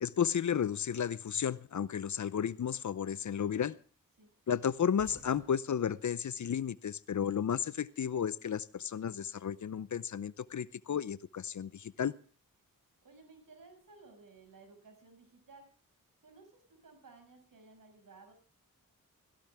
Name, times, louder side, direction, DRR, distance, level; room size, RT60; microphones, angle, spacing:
voice 1, 0.0-3.8 4.5-12.2, left 8 dB, 55° left, 17 dB, 0.7 m, -33 dB
sound 1, 4.9-7.2 7.5-8.5 9.7-11.2, right 1 dB, 25° right, 7.2 m, -59 dB
voice 2, 13.0-15.7 16.2-18.3, right 3 dB, 70° right, 6 dB, 6.3 m, -57 dB
17.0 x 16.5 x 3.5 m, 0.40 s
cardioid pair, 55°, 34 cm